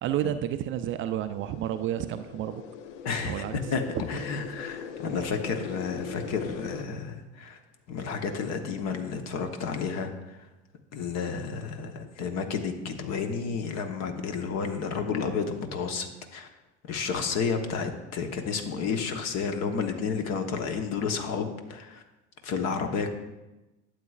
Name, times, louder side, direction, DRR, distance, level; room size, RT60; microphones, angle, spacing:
voice 1, 0.0-2.6 3.2-3.6, right 11 dB, 35° right, 10 dB, 0.4 m, -30 dB
sound 1, 0.8-6.8, left 7 dB, 75° left, 0.6 m, -41 dB
voice 2, 3.0-3.8 4.1-7.6 7.9-10.4 10.9-16.5 16.9-22.0 22.4-23.1, left 5 dB, 50° left, 6 dB, 1.1 m, -31 dB
12.0 x 8.0 x 2.4 m, 1.0 s
hypercardioid pair, 70°, 35 cm